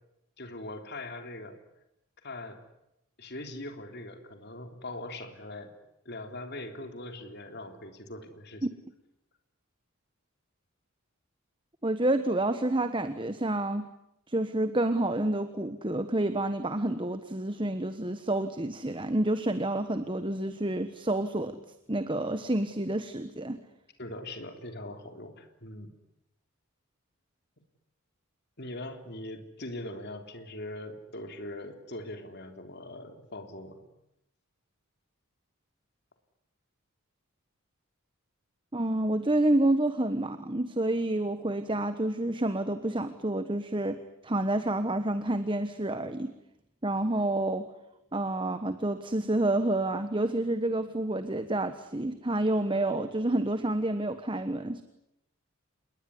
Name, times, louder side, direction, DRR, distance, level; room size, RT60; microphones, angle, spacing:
voice 1, 0.4-1.6 2.2-2.6 3.2-5.7 6.1-8.7 24.0-25.9 28.6-33.8, left 1 dB, 50° left, 6 dB, 3.6 m, -41 dB
voice 2, 11.8-13.9 14.3-21.6 21.9-23.6 38.7-46.3 46.8-47.7 48.1-54.8, right 1 dB, 20° right, 10 dB, 1.2 m, -29 dB
28.0 x 21.5 x 9.8 m, 0.83 s
head